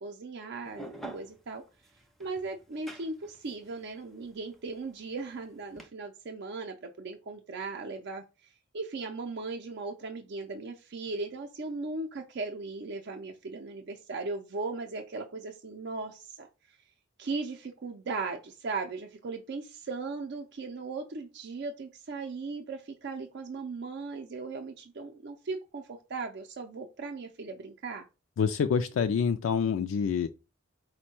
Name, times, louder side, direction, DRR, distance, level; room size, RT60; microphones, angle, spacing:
voice 1, 0.0-1.6 2.2-8.2 8.7-16.8 17.2-28.1, right 3 dB, 55° right, 0.5 m, -38 dB
sound 1, 0.6-5.9, right 2 dB, ahead, 0.5 m, -47 dB
voice 2, 28.4-30.3, left 6 dB, 70° left, 0.3 m, -27 dB
4.4 x 2.1 x 4.3 m
head